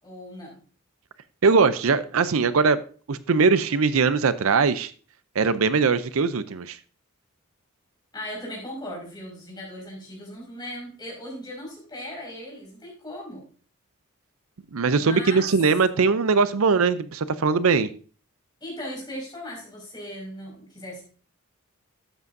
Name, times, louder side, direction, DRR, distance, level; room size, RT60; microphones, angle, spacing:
voice 1, 0.0-0.6 8.1-13.5 15.0-15.5 18.6-21.0, left 1 dB, 20° left, -2 dB, 5.3 m, -38 dB
voice 2, 1.4-2.8 3.1-4.9 5.4-6.8 14.7-17.9, right 4 dB, 75° right, 14 dB, 0.5 m, -21 dB
12.5 x 8.3 x 2.6 m, 0.39 s
head